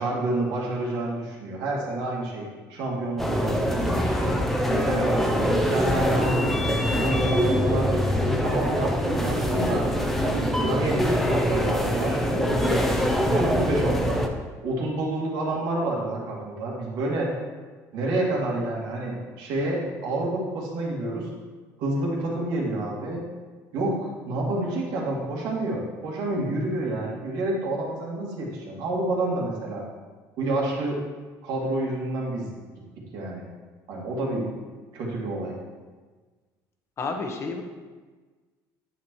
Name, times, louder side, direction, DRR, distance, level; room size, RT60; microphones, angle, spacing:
voice 1, 0.0-2.4 2.7-4.4 4.7-9.8 10.2-14.2 14.6-17.3 17.9-21.3 21.8-23.2 23.7-29.8 30.4-31.0 31.4-32.5 33.1-33.5 33.9-34.5 34.9-35.5, right 2 dB, 80° right, -3 dB, 2.2 m, -28 dB
sound 1, 3.2-14.3, equal, 5° left, 0.7 m, -24 dB
voice 2, 37.0-37.6, left 4 dB, 40° left, 4 dB, 1.0 m, -31 dB
8.9 x 7.1 x 3.2 m, 1.4 s
cardioid pair, 135°, 7 cm